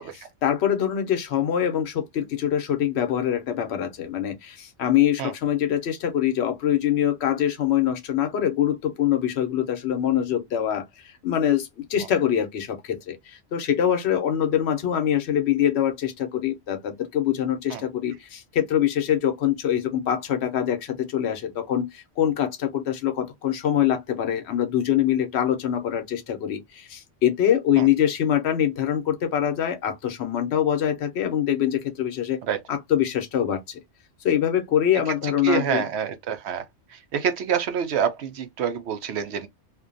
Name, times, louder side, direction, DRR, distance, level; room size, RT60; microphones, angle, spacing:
voice 1, 0.0-32.4 32.7-33.8 34.2-35.9, left 10 dB, 70° left, 0.9 m, -24 dB
voice 2, 35.2-36.6 36.9-39.5, right 7 dB, 75° right, 0.8 m, -27 dB
2.5 x 2.2 x 2.5 m
omnidirectional pair, 1.2 m